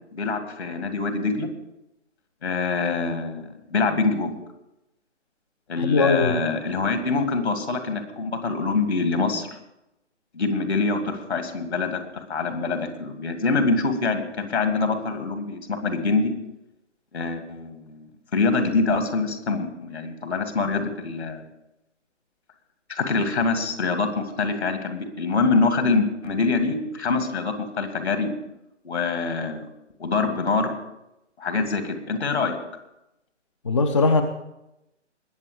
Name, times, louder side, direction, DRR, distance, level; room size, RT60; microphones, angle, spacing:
voice 1, 0.1-1.5 2.4-4.4 5.7-9.5 10.3-16.3 17.1-21.4 22.9-28.3 28.8-29.6 30.0-30.7 31.4-32.6, left 4 dB, 60° left, 7 dB, 2.3 m, -25 dB
voice 2, 5.8-6.4 33.7-34.2, left 3 dB, 25° left, 8 dB, 0.5 m, -20 dB
20.5 x 7.5 x 5.0 m, 0.89 s
figure-of-eight pair, 135°, 37 cm